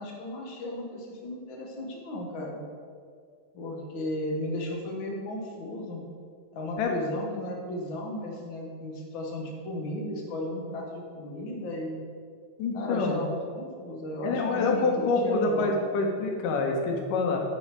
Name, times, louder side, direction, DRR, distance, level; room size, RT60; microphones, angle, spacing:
voice 1, 0.0-2.6 3.5-6.0 6.5-12.0 12.7-15.8, left 1 dB, 50° left, -1 dB, 1.6 m, -35 dB
voice 2, 12.6-13.2 14.2-17.4, left 3 dB, 90° left, 1 dB, 2.6 m, -26 dB
10.0 x 5.6 x 4.6 m, 2.1 s
omnidirectional pair, 3.7 m